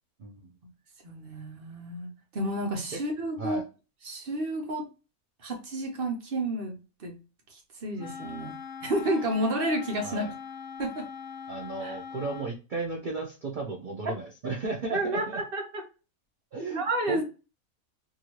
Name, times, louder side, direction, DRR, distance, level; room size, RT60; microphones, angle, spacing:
voice 1, 1.0-3.6 4.0-4.8 5.4-7.2 7.8-8.5 8.8-10.3 10.8-11.1 11.8-12.0 14.9-15.8 16.5-17.2, right 1 dB, 45° right, 2 dB, 0.9 m, -31 dB
Wind instrument woodwind instrument, 8.0-12.6, left 6 dB, 80° left, 1.2 m, -41 dB
voice 2, 11.5-15.4 16.5-17.2, right 3 dB, 90° right, -1 dB, 0.4 m, -34 dB
2.8 x 2.6 x 2.9 m, 0.32 s
omnidirectional pair, 1.5 m